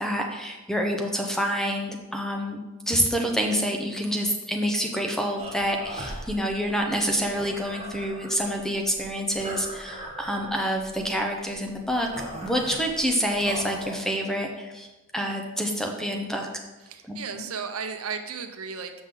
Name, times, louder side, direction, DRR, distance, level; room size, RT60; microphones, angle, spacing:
voice 1, 0.0-2.6 2.9-12.1 12.4-14.9 15.1-16.5 17.1-17.4, equal, ahead, 2 dB, 0.6 m, -27 dB
sound 1, 5.4-14.0, right 1 dB, 30° right, 1.4 m, -40 dB
voice 2, 16.8-18.9, right 6 dB, 85° right, 7 dB, 0.7 m, -34 dB
7.3 x 6.0 x 3.7 m, 1.1 s
head